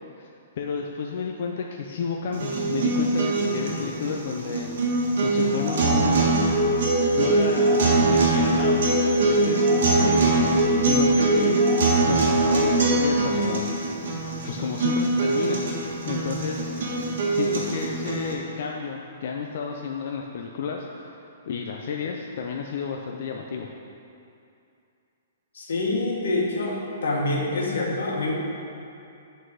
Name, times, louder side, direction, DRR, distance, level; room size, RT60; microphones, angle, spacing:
voice 1, 0.6-6.3 7.2-7.8 8.1-10.6 10.9-13.7 14.2-15.6 16.1-23.7, left 6 dB, 45° left, 1 dB, 0.4 m, -32 dB
sound 1, 2.3-18.3, right 2 dB, 55° right, 1.4 m, -22 dB
voice 2, 25.5-28.3, left 2 dB, 80° left, -2 dB, 1.6 m, -26 dB
7.4 x 4.0 x 6.3 m, 2.6 s
hypercardioid pair, 180°, 0 cm